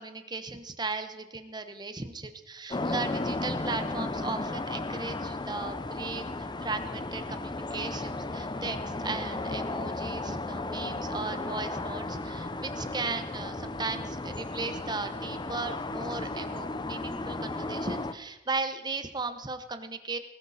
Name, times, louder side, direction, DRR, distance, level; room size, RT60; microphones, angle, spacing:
voice 1, 0.0-6.2 6.6-20.2, right 3 dB, 25° right, 9 dB, 1.1 m, -36 dB
sound 1, 2.7-18.1, left 2 dB, 25° left, 0.7 m, -34 dB
20.5 x 13.5 x 4.2 m, 0.94 s
head